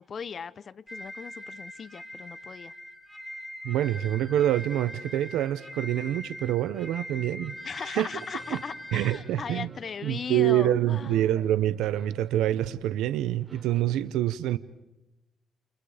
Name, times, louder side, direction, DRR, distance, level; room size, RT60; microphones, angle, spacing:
voice 1, 0.0-2.7 7.6-11.3, left 6 dB, 45° left, 0.8 m, -38 dB
sound 1, 0.9-9.2, equal, ahead, 4.0 m, -42 dB
voice 2, 3.6-7.5 7.8-8.1 8.5-8.6 8.9-9.7 10.0-14.6, right 12 dB, 90° right, 0.8 m, -26 dB
sound 2, 8.3-13.8, right 2 dB, 20° right, 5.4 m, -53 dB
29.5 x 29.0 x 5.0 m
cardioid pair, 90°, 0 cm